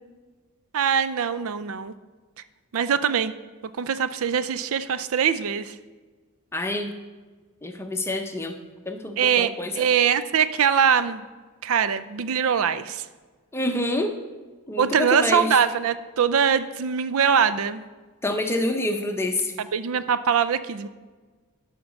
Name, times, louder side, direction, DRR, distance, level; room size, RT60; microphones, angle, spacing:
voice 1, 0.7-1.9 2.7-3.3 3.8-5.7 9.2-9.5 9.8-11.2 11.6-13.0 14.8-17.8 19.7-20.9, right 7 dB, 65° right, 14 dB, 0.4 m, -22 dB
voice 2, 6.5-6.9 7.6-8.6 8.9-9.8 13.5-14.2 14.7-15.6 18.2-19.5, left 1 dB, 10° left, 5 dB, 0.7 m, -27 dB
12.0 x 5.8 x 5.2 m, 1.4 s
head